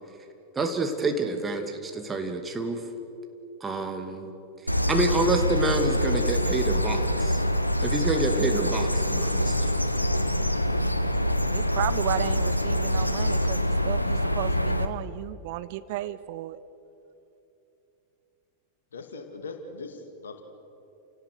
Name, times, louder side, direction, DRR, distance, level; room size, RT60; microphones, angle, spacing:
voice 1, 0.6-2.8 3.6-4.3 4.9-7.4 7.8-9.8, right 2 dB, 15° right, 5 dB, 2.3 m, -28 dB
sound 1, 4.7-14.9, equal, 85° left, 1.0 m, -25 dB
voice 2, 11.5-16.6, right 15 dB, 50° right, 16 dB, 0.6 m, -33 dB
voice 3, 18.9-20.4, left 3 dB, 70° left, 6 dB, 2.3 m, -40 dB
29.5 x 18.0 x 6.8 m, 2.9 s
figure-of-eight pair, 90°, 0 cm